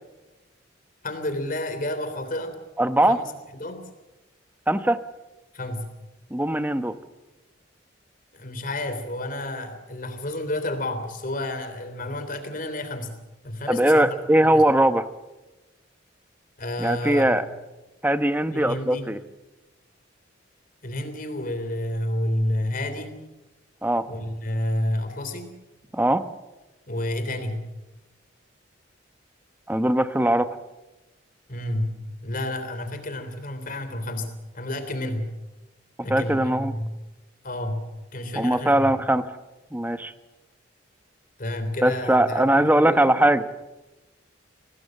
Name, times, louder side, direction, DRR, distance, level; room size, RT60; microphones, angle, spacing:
voice 1, 1.0-2.6 3.1-3.2 3.5-3.9 5.5-6.0 8.3-14.2 14.4-14.6 16.6-17.3 18.5-19.1 20.8-23.2 24.1-25.6 26.9-27.7 31.5-35.3 36.0-37.0 37.4-38.9 41.4-43.2, left 1 dB, 45° left, 9 dB, 3.4 m, -30 dB
voice 2, 2.8-3.2 4.7-5.0 6.3-7.0 13.7-15.1 16.8-17.4 18.0-19.2 23.8-24.1 25.9-26.2 29.7-30.6 36.1-36.7 38.4-39.3 39.7-40.1 41.8-43.4, right 1 dB, 10° right, 11 dB, 1.0 m, -20 dB
25.0 x 18.5 x 7.6 m, 1.1 s
head